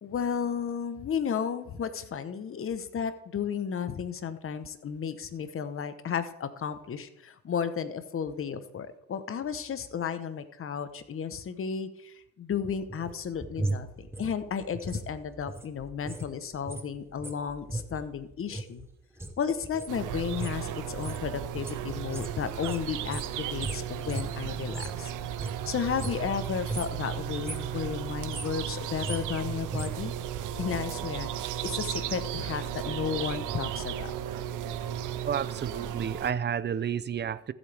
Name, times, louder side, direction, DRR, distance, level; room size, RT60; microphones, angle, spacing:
voice 1, 0.0-18.9 19.4-25.1 25.6-30.1 30.6-34.1, left 7 dB, 45° left, 1.0 m, -33 dB
sound 1, 12.7-16.3 16.5-25.0 25.3-26.4 26.6-27.0 27.3-27.8 28.1-30.8 31.1-31.2, right 2 dB, 10° right, 1.1 m, -38 dB
sound 2, 19.9-36.3, right 10 dB, 85° right, 0.8 m, -35 dB
voice 2, 35.3-37.5, right 8 dB, 35° right, 0.6 m, -31 dB
14.5 x 8.2 x 3.5 m
cardioid pair, 90°, 30 cm